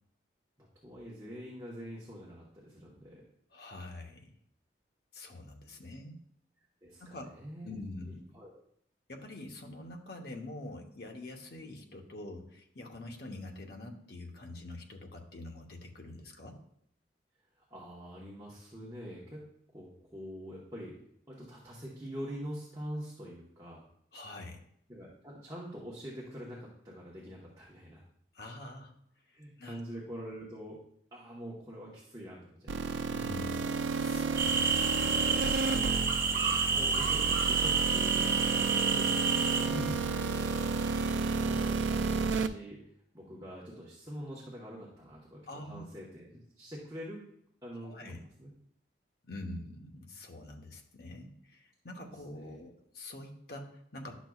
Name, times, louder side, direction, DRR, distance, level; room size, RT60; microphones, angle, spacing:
voice 1, 0.6-3.2 5.9-6.0 6.8-7.7 8.3-8.6 17.7-19.4 19.7-21.0 21.3-23.8 24.9-28.0 29.3-30.8 31.1-33.0 36.3-39.3 41.1-42.8 43.1-47.2 47.6-48.5 52.3-52.6, equal, 20° right, -5 dB, 1.1 m, -45 dB
voice 2, 3.5-4.3 5.1-6.2 7.0-7.3 7.6-8.2 9.1-16.6 24.1-24.6 28.3-28.9 29.3-29.8 33.1-35.9 37.2-37.3 39.6-40.0 45.5-45.9 47.8-48.2 49.2-54.2, left 1 dB, 55° left, 2 dB, 1.0 m, -45 dB
sound 1, 32.7-42.5, right 4 dB, 85° right, 0.4 m, -32 dB
sound 2, 34.4-39.7, right 5 dB, 50° right, 1.1 m, -29 dB
11.0 x 6.2 x 2.4 m, 0.70 s
head